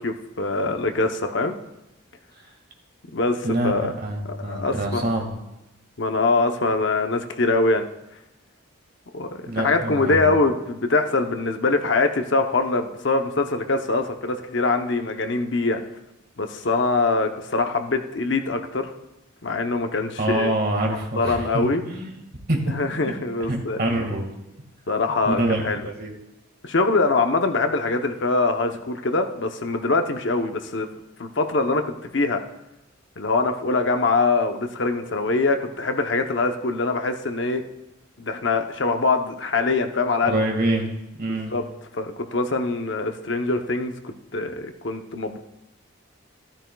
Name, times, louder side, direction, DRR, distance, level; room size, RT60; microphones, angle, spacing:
voice 1, 0.0-1.6 3.1-3.9 4.2-5.0 6.0-7.9 9.1-15.8 16.4-18.9 19.4-20.5 21.2-21.8 22.8-23.8 24.9-25.9 26.6-30.9 31.2-32.4 33.2-37.6 38.2-40.4 41.3-41.6 41.9-45.4, left 3 dB, 60° left, 6 dB, 0.8 m, -23 dB
voice 2, 3.4-5.3 9.5-10.3 20.2-22.2 22.5-23.0 23.5-24.3 25.1-26.1 40.2-40.9 41.2-41.5, right 1 dB, 45° right, 1 dB, 1.8 m, -26 dB
13.0 x 12.5 x 2.3 m, 0.92 s
head